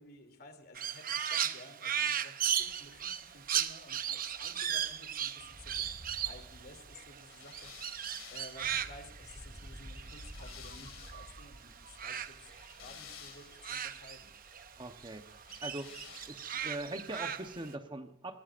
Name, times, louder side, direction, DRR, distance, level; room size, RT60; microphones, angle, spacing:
voice 1, 0.0-5.8 6.2-12.5 12.8-14.3, left 2 dB, 50° left, 6 dB, 2.9 m, -54 dB
Crow, 0.7-11.4 11.7-14.7 15.0-17.7, right 9 dB, 45° right, 0.7 m, -37 dB
sound 1, 2.6-17.6, equal, 5° left, 2.0 m, -55 dB
sound 2, 7.3-11.4 12.3-13.8 15.4-16.7, left 9 dB, 90° left, 2.4 m, -53 dB
voice 2, 14.8-15.3 15.6-15.9 16.2-18.4, right 1 dB, 25° right, 6 dB, 1.0 m, -41 dB
26.5 x 19.0 x 2.5 m, 0.77 s
head